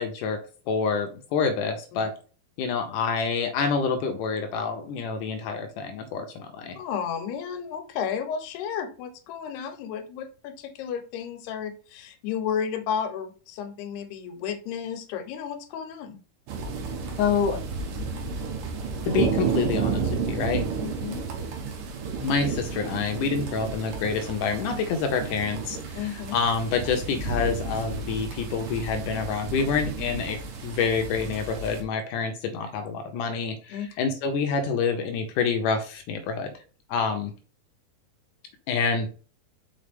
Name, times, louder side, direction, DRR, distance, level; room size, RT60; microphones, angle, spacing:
voice 1, 0.0-2.1 2.6-6.8 17.2-17.6 19.1-20.0 20.3-20.6 22.2-25.8 26.3-30.4 30.6-36.5 36.9-37.3 38.7-39.1, left 5 dB, 75° left, 5 dB, 2.0 m, -27 dB
voice 2, 6.8-16.2 20.8-21.3 26.0-26.4 33.7-33.9, left 7 dB, 90° left, 7 dB, 2.9 m, -33 dB
sound 1, 16.5-31.8, right 5 dB, 65° right, 2.7 m, -32 dB
6.3 x 4.8 x 3.5 m, 0.37 s
omnidirectional pair, 4.5 m